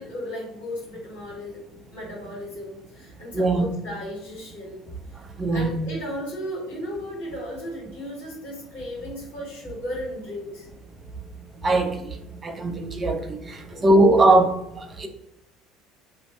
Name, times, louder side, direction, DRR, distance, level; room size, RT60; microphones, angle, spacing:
voice 1, 0.0-1.6 1.9-4.8 5.5-10.7 13.5-13.9, left 1 dB, 70° left, -6 dB, 1.5 m, -35 dB
voice 2, 3.3-3.7 5.4-5.7 11.6-12.0 12.4-15.1, right 2 dB, 30° right, 5 dB, 0.6 m, -20 dB
2.5 x 2.4 x 3.2 m, 0.83 s
figure-of-eight pair, 60°, 0 cm